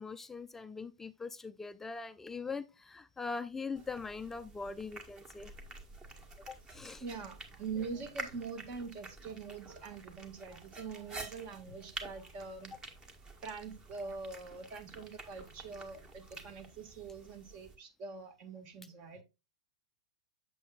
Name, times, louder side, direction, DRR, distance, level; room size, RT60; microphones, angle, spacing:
voice 1, 0.0-5.5 6.5-7.0, left 4 dB, 10° left, 0.4 m, -42 dB
sound 1, 3.8-17.8, right 3 dB, 25° right, 1.6 m, -50 dB
voice 2, 7.0-12.7 13.4-19.2, right 4 dB, 40° right, 1.8 m, -44 dB
8.2 x 7.5 x 2.4 m
hypercardioid pair, 110°, 3 cm